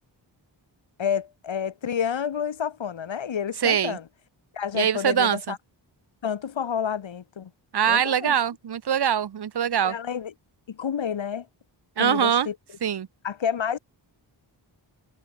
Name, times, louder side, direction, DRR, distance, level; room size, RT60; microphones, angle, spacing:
voice 1, 1.0-4.0 4.5-5.6 6.2-7.5 7.8-8.3 9.8-10.3 10.7-11.5 12.0-12.5 13.2-13.8, left 8 dB, 80° left, 4.4 m, -29 dB
voice 2, 3.6-4.0 4.7-5.5 7.7-9.9 12.0-12.5 12.8-13.1, right 8 dB, 60° right, 1.4 m, -23 dB
wide cardioid pair, 145°, 45 cm